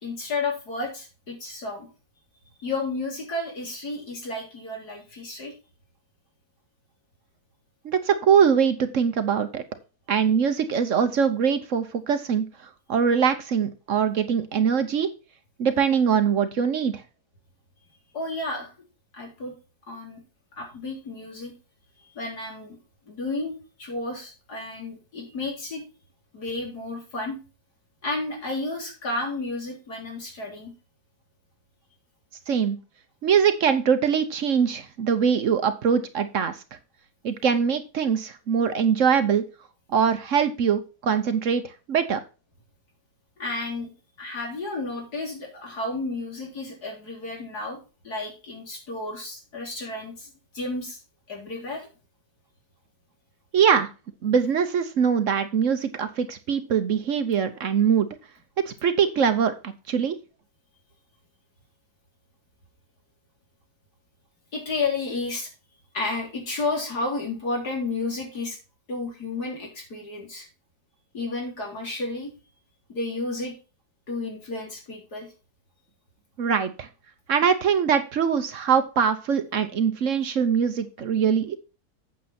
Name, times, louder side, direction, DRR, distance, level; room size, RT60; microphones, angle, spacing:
voice 1, 0.0-1.9 2.6-5.5 18.1-18.7 19.1-19.5 19.9-20.2 20.6-21.5 22.0-22.8 23.1-25.8 26.3-27.4 28.0-30.7 43.4-43.9 44.2-47.8 48.0-51.0 51.3-51.9 64.5-65.5 65.9-68.6 68.9-70.4 71.1-72.3 72.9-73.5 74.1-75.3, left 3 dB, 80° left, 0 dB, 4.1 m, -32 dB
voice 2, 7.8-9.6 10.1-15.1 15.6-17.0 32.5-32.8 33.2-36.6 37.2-39.4 39.9-42.2 53.5-53.9 54.2-58.1 58.6-60.2 76.4-76.9 77.3-81.6, right 7 dB, 60° right, 10 dB, 1.1 m, -22 dB
8.7 x 7.0 x 4.3 m, 0.31 s
omnidirectional pair, 1.7 m